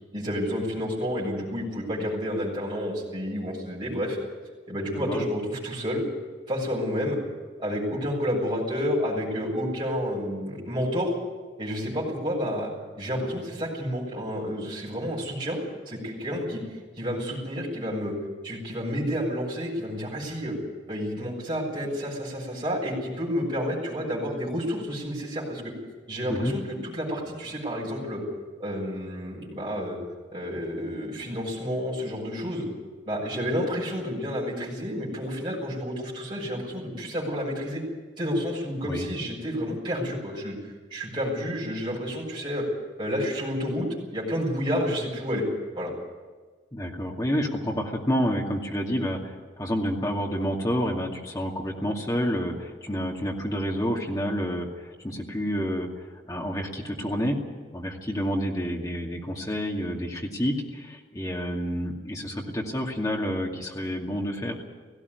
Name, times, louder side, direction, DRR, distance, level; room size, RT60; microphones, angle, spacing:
voice 1, 0.1-4.2 4.7-6.0 6.5-7.2 7.6-11.2 11.6-12.7 13.0-15.6 15.9-16.6 17.0-18.1 18.4-20.6 20.9-25.6 26.1-28.2 28.6-30.0 30.3-32.7 33.1-37.8 38.2-40.5 40.9-42.7 43.0-43.9 44.1-45.4 45.7-45.9, equal, 25° right, -5 dB, 7.1 m, -30 dB
voice 2, 4.9-5.3 26.3-26.5 38.8-39.1 46.7-55.9 56.3-57.4 57.7-64.6, equal, 20° left, -1 dB, 2.4 m, -29 dB
18.0 x 16.0 x 9.7 m, 1.4 s
head